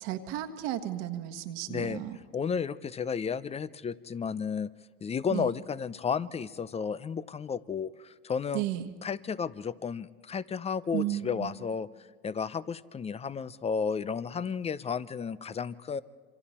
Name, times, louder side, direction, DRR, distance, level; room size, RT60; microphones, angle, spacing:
voice 1, 0.0-2.2 5.3-5.5 8.5-8.9 10.9-11.6, right 13 dB, 65° right, 7 dB, 1.6 m, -33 dB
voice 2, 1.7-2.0 2.3-4.7 5.0-8.6 9.0-11.9 12.2-16.0, left 6 dB, 20° left, 17 dB, 0.6 m, -33 dB
27.0 x 25.5 x 4.3 m, 1.5 s
hypercardioid pair, 90°, 29 cm